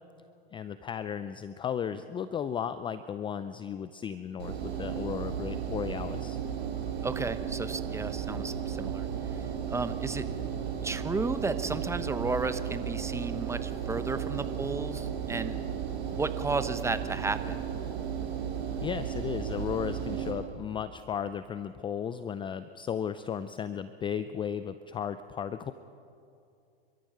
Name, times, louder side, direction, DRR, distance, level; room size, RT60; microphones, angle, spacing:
voice 1, 0.5-6.4 18.8-25.7, left 8 dB, 15° left, 13 dB, 0.5 m, -35 dB
Engine, 4.4-20.3, right 8 dB, 85° right, 4.9 m, -34 dB
voice 2, 7.0-9.1 9.4-10.2 10.8-15.5 16.1-17.6, right 3 dB, 10° right, 10 dB, 1.0 m, -33 dB
29.5 x 13.5 x 6.5 m, 2.6 s
hypercardioid pair, 110°, 31 cm